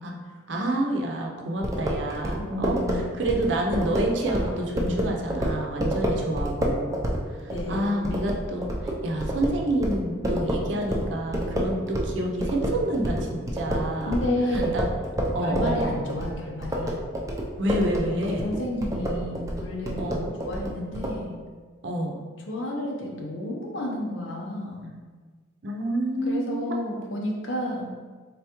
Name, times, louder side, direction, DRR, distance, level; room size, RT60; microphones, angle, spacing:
voice 1, 0.5-7.1 7.4-14.2 14.5-14.8 15.3-15.9 17.6-18.5 20.0-20.3 21.8-22.2 25.6-26.7, right 1 dB, 70° right, 0 dB, 0.6 m, -28 dB
sound 1, 1.6-12.1 12.4-21.1, equal, 15° right, 0.4 m, -28 dB
voice 2, 2.4-3.2 7.5-8.2 14.1-14.7 15.4-16.9 17.9-20.2 20.4-21.4 22.5-25.0 26.2-27.9, left 1 dB, 85° left, -1 dB, 0.8 m, -31 dB
3.8 x 3.4 x 3.0 m, 1.4 s
head